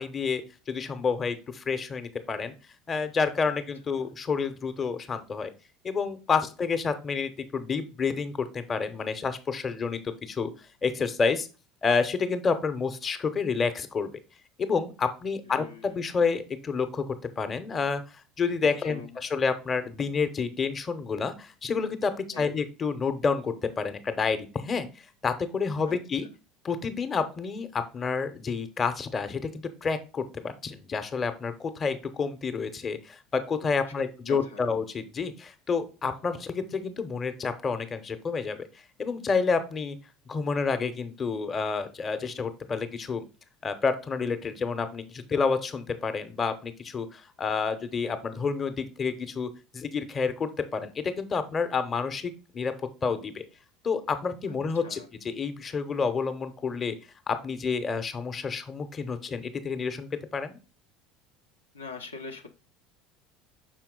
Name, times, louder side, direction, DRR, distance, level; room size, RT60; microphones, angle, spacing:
voice 1, 0.0-2.5 2.9-5.5 5.8-10.5 10.8-11.5 11.8-14.1 14.6-24.9 25.2-26.3 26.6-38.6 39.0-40.0 40.3-43.2 43.6-52.7 53.0-53.4 53.8-56.9 57.3-60.6, left 5 dB, 30° left, 10 dB, 0.8 m, -29 dB
voice 2, 15.4-16.0 18.8-19.3 22.3-22.5 25.8-26.0 33.9-34.0 34.2-34.7 54.7-55.1 61.7-62.5, left 4 dB, 80° left, 3 dB, 0.7 m, -42 dB
6.0 x 4.4 x 3.7 m, 0.33 s
figure-of-eight pair, 70°, 0 cm